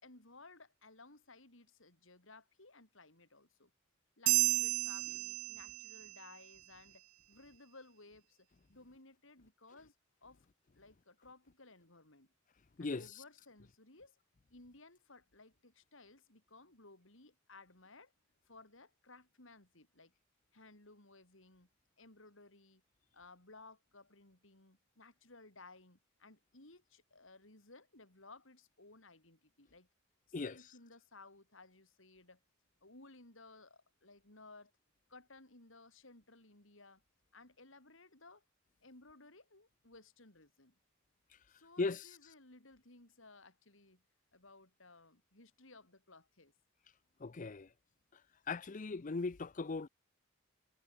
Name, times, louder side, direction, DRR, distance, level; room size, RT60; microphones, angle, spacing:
voice 1, 0.0-3.7 4.2-9.9 10.2-10.5 10.8-12.3 12.8-14.2 14.5-18.1 18.5-20.1 20.5-21.7 22.0-22.8 23.1-29.9 30.3-32.4 32.8-34.7 35.1-37.0 37.3-38.4 38.8-40.7 41.5-44.0 44.3-46.5, left 3 dB, 65° left, 4.5 m, -59 dB
sound 1, 4.3-6.1, right 18 dB, 85° right, 0.4 m, -32 dB
voice 2, 47.2-47.7 48.5-49.9, left 3 dB, 40° left, 0.6 m, -38 dB
head